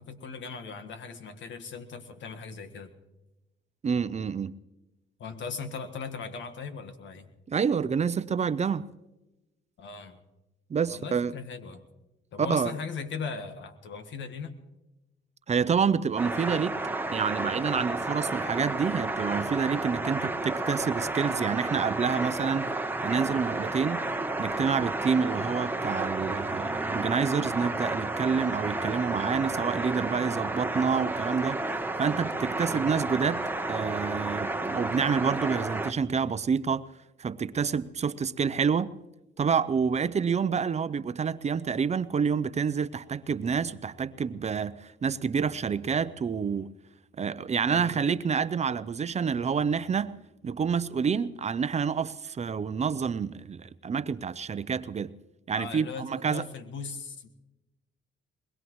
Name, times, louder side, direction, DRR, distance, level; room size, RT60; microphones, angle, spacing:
voice 1, 0.0-2.9 5.2-7.3 9.8-10.2 10.9-11.8 12.3-14.6 32.6-32.9 47.7-48.1 55.5-57.3, left 5 dB, 70° left, 1.6 m, -39 dB
voice 2, 3.8-4.5 7.5-8.9 10.7-11.3 12.4-12.7 15.5-16.7 17.1-22.7 23.0-24.0 24.4-31.6 32.0-33.4 33.7-36.9 37.2-38.9 39.4-46.7 47.2-50.1 50.4-55.1 55.5-56.4, right 6 dB, 35° right, 0.6 m, -28 dB
sound 1, 16.2-35.9, right 2 dB, 10° right, 1.0 m, -31 dB
21.5 x 21.5 x 3.1 m
cardioid pair, 90°, 20 cm